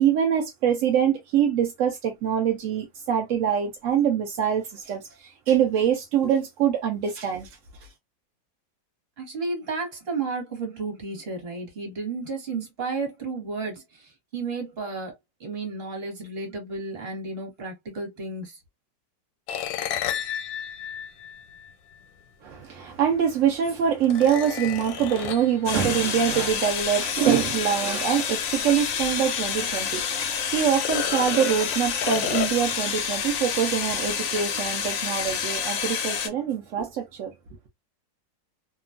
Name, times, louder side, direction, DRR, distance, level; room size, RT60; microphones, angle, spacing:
voice 1, 0.0-7.5 22.4-37.3, right 8 dB, 75° right, 0.7 m, -24 dB
voice 2, 9.2-15.1 15.4-18.6, right 3 dB, 40° right, 1.2 m, -32 dB
sound 1, 19.5-22.0 23.2-23.3 24.0-25.6 28.9-29.0 29.4-29.5 30.7-32.9, left 10 dB, 90° left, 1.3 m, -32 dB
sound 2, 25.7-36.3, left 7 dB, 70° left, 0.7 m, -28 dB
2.9 x 2.3 x 2.3 m
omnidirectional pair, 1.9 m